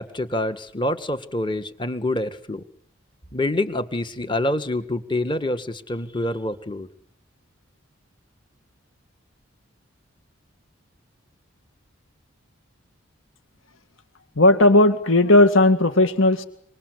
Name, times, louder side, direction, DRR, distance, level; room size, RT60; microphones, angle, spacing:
voice 1, 0.0-2.6 3.3-6.9, left 1 dB, 25° left, 10 dB, 2.0 m, -26 dB
voice 2, 14.4-16.4, left 2 dB, 70° left, 10 dB, 2.2 m, -16 dB
27.0 x 25.5 x 8.4 m, 0.64 s
head